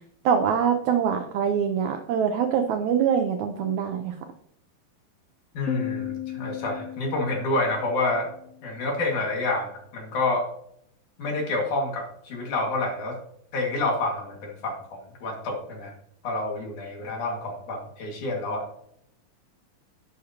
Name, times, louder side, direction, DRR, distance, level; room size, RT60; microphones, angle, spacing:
voice 1, 0.2-4.1, right 7 dB, 90° right, 6 dB, 1.6 m, -24 dB
voice 2, 5.5-8.3 8.6-10.5 11.2-13.2 13.5-15.9 16.2-18.6, left 2 dB, 60° left, 0 dB, 3.3 m, -28 dB
Piano, 5.7-9.1, left 13 dB, 90° left, 2.5 m, -36 dB
11.5 x 8.7 x 2.9 m, 0.73 s
omnidirectional pair, 4.2 m